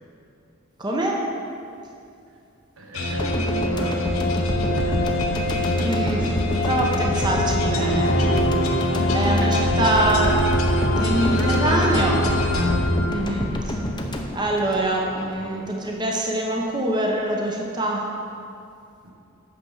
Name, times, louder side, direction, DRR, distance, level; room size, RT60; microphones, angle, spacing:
voice 1, 0.8-1.2 5.8-6.3 6.6-8.1 9.1-10.4 10.9-12.2 13.0-13.8 14.3-18.0, right 1 dB, 20° right, -1 dB, 0.8 m, -24 dB
voice 2, 2.8-5.2 5.7-6.1 11.2-12.4 15.4-15.7 19.0-19.1, right 1 dB, 80° right, -2 dB, 1.6 m, -36 dB
sound 1, 2.9-13.6, left 1 dB, 80° left, 1.0 m, -23 dB
sound 2, 3.2-15.4 15.6-15.8, equal, 20° left, 0.7 m, -28 dB
8.7 x 6.8 x 5.5 m, 2.6 s
head